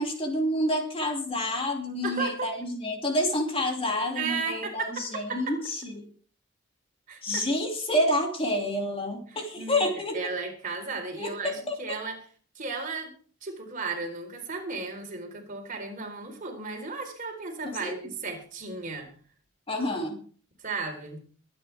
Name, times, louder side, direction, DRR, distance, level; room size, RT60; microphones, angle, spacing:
voice 1, 0.0-6.1 7.2-10.2 11.2-12.0 17.6-17.9 19.7-20.2, left 1 dB, 30° left, 2 dB, 2.7 m, -28 dB
voice 2, 2.0-2.5 4.1-5.6 7.1-7.5 9.3-9.9 10.1-12.2 12.5-13.1 13.4-19.1 20.6-21.2, right 4 dB, 40° right, 2 dB, 4.3 m, -34 dB
23.5 x 9.5 x 3.5 m, 0.43 s
head